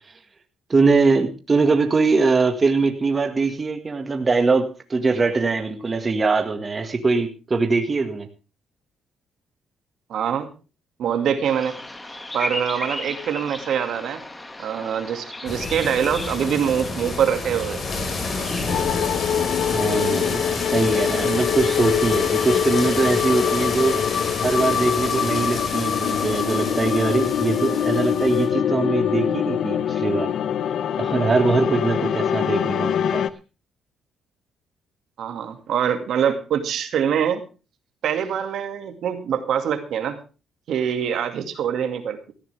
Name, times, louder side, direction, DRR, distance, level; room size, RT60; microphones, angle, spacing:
voice 1, 0.7-8.3 19.7-24.2 24.4-30.3 31.0-33.2, right 3 dB, 30° right, 6 dB, 1.8 m, -22 dB
voice 2, 10.1-10.5 11.0-11.8 12.3-14.2 14.6-17.8 35.2-37.4 38.0-40.2 40.7-42.3, right 8 dB, 70° right, 7 dB, 2.2 m, -24 dB
Bird vocalization bird call bird song, 11.4-18.8, left 1 dB, 15° left, 2.1 m, -35 dB
sound 1, 15.5-28.5, left 3 dB, 50° left, 5.0 m, -29 dB
sound 2, 18.7-33.3, left 9 dB, 70° left, 0.8 m, -24 dB
17.5 x 14.0 x 3.5 m, 0.33 s
cardioid pair, 90°, 0 cm